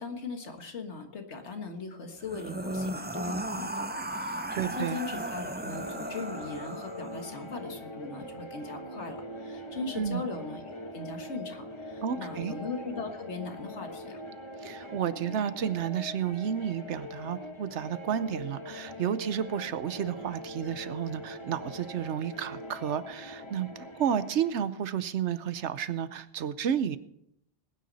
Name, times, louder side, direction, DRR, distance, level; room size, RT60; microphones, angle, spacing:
voice 1, 0.0-14.2, left 4 dB, 85° left, 5 dB, 1.8 m, -39 dB
sound 1, 2.2-7.4, right 1 dB, 10° right, 0.5 m, -36 dB
voice 2, 4.6-5.0 10.0-10.2 12.0-12.5 14.6-23.7 24.0-27.0, right 8 dB, 85° right, 14 dB, 1.1 m, -31 dB
sound 2, 5.7-24.5, left 1 dB, 25° left, 1.2 m, -43 dB
20.0 x 9.4 x 4.1 m, 0.75 s
omnidirectional pair, 1.1 m